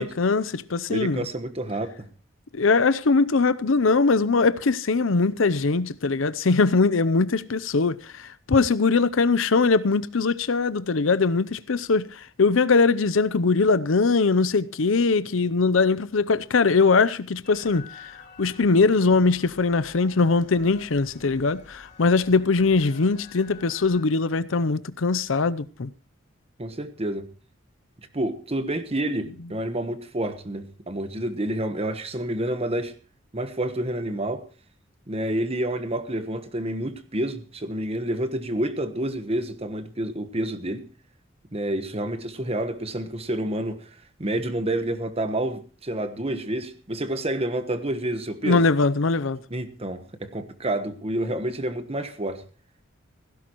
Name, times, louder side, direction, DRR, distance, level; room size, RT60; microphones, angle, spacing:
voice 1, 0.0-1.3 2.5-17.9 18.4-25.9 48.4-49.4, left 4 dB, 70° left, 0.7 m, -21 dB
voice 2, 0.9-2.1 26.6-27.3 28.1-32.9 33.3-34.5 35.1-40.9 41.5-43.8 44.2-48.6 49.5-52.4, right 1 dB, 30° right, 1.2 m, -29 dB
sound 1, 17.4-24.1, left 4 dB, 35° left, 2.1 m, -48 dB
16.5 x 16.0 x 3.0 m
head